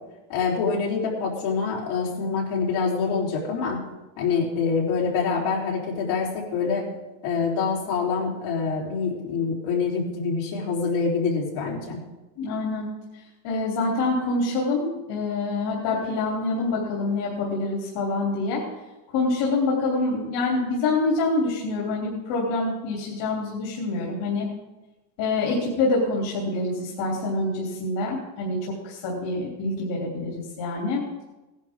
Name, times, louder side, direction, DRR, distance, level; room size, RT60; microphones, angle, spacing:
voice 1, 0.3-3.8 4.2-6.9 7.2-12.0, left 5 dB, 75° left, -3 dB, 4.0 m, -25 dB
voice 2, 12.4-12.9 13.4-18.6 19.1-24.5 25.2-28.6 28.8-31.0, left 3 dB, 60° left, -3 dB, 3.3 m, -26 dB
18.0 x 10.5 x 3.7 m, 1.1 s
cardioid pair, 175°, 48 cm